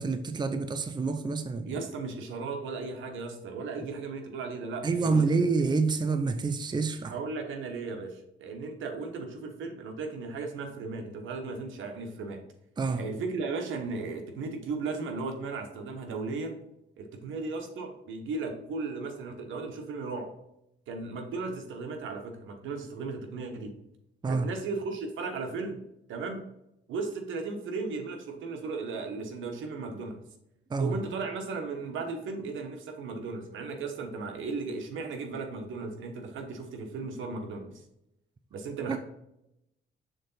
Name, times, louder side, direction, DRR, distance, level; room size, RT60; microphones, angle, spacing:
voice 1, 0.0-1.7 4.8-7.1 12.8-13.0 24.2-24.5 30.7-31.0 38.9-39.0, right 4 dB, 20° right, 9 dB, 0.5 m, -27 dB
voice 2, 1.6-5.2 7.0-12.4 13.0-16.6 17.0-20.3 20.9-23.7 24.3-25.8 26.1-26.4 26.9-30.2 30.8-37.7 38.5-39.0, right 4 dB, 80° right, 4 dB, 1.2 m, -36 dB
6.6 x 3.8 x 4.0 m, 0.84 s
cardioid pair, 90°, 20 cm